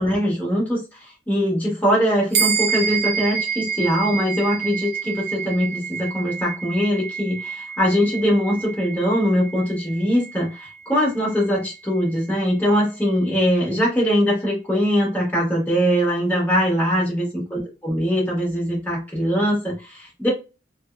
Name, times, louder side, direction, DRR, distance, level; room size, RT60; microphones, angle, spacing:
voice 1, 0.0-17.3 17.5-20.3, equal, 10° left, -3 dB, 1.1 m, -22 dB
sound 1, 2.3-12.1, right 7 dB, 45° right, 0.5 m, -28 dB
2.7 x 2.1 x 2.2 m, 0.29 s
head